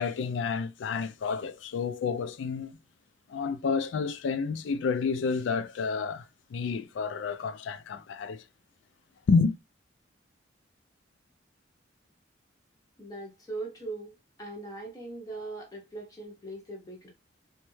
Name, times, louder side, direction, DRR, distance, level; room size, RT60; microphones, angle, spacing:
voice 1, 0.0-2.7 3.3-8.4 9.3-9.5, left 5 dB, 80° left, 0.3 m, -29 dB
voice 2, 13.0-14.1 14.4-17.1, right 2 dB, 20° left, 0.6 m, -40 dB
3.1 x 2.2 x 3.0 m
head